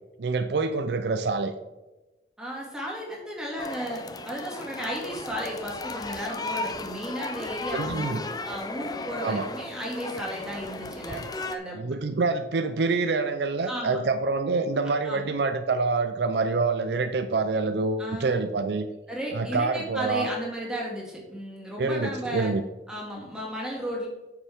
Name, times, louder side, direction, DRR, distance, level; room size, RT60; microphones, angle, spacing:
voice 1, 0.2-1.5 7.7-8.2 9.2-9.5 11.7-18.9 19.3-20.3 21.8-22.6, right 3 dB, 70° right, 9 dB, 0.5 m, -26 dB
voice 2, 2.4-11.8 13.6-14.0 15.0-15.3 18.0-18.5 19.1-22.5 22.9-24.1, equal, 5° right, -4 dB, 2.2 m, -34 dB
sound 1, 3.6-11.6, left 2 dB, 20° left, 0.5 m, -35 dB
9.0 x 6.7 x 3.5 m, 1.1 s
head